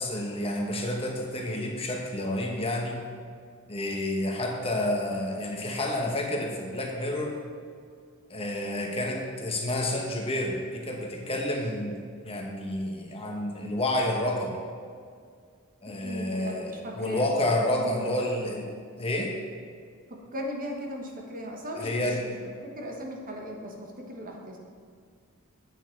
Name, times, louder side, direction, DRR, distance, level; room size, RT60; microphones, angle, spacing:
voice 1, 0.0-3.0 3.7-7.3 8.3-12.0 12.2-14.6 15.8-18.7 19.0-19.3 21.7-22.2, left 1 dB, 25° left, 0 dB, 1.2 m, -29 dB
voice 2, 15.9-17.3 17.7-18.2 20.3-22.3 22.7-24.6, equal, 40° right, 0 dB, 1.3 m, -37 dB
8.9 x 8.2 x 4.5 m, 2.1 s
head